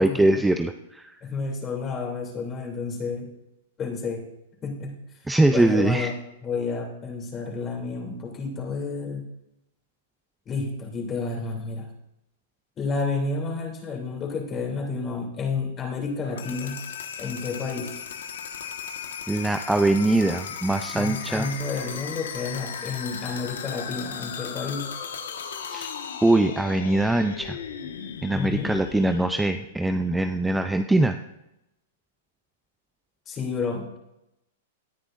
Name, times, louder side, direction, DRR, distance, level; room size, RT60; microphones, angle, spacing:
voice 1, 0.0-1.2 5.3-6.1 19.3-21.5 25.7-25.9 26.2-27.6 28.2-31.2, right 2 dB, 5° right, 8 dB, 0.5 m, -22 dB
voice 2, 1.2-3.3 3.8-4.2 4.6-4.9 5.5-6.1 6.4-9.3 10.5-11.9 12.8-16.8 17.2-18.0 20.9-24.9 28.3-28.7 33.3-33.9, left 4 dB, 25° left, 0 dB, 3.0 m, -30 dB
sound 1, 16.2-30.1, left 7 dB, 85° left, 1.5 m, -37 dB
18.0 x 9.8 x 2.6 m, 0.87 s
hypercardioid pair, 140°, 0 cm